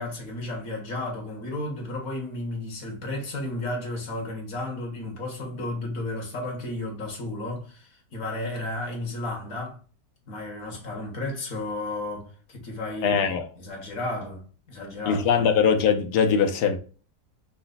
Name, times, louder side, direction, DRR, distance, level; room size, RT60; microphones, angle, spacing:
voice 1, 0.0-9.8 10.3-13.2 13.6-15.5, left 2 dB, 60° left, 1.8 m, -33 dB
voice 2, 13.0-13.5 15.1-16.8, left 6 dB, 75° left, 1.2 m, -21 dB
5.6 x 2.1 x 3.9 m
omnidirectional pair, 1.7 m